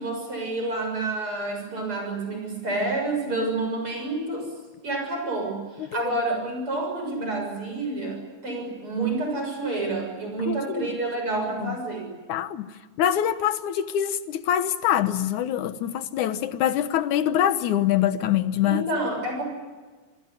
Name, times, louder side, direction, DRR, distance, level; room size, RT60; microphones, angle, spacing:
voice 1, 0.0-4.5 4.8-12.1 18.6-19.4, right 2 dB, 45° right, 7.7 m, -29 dB
voice 2, 10.5-10.8 11.6-11.8 12.3-12.7 13.0-18.9, left 11 dB, 85° left, 2.6 m, -24 dB
28.0 x 20.5 x 9.8 m
omnidirectional pair, 3.3 m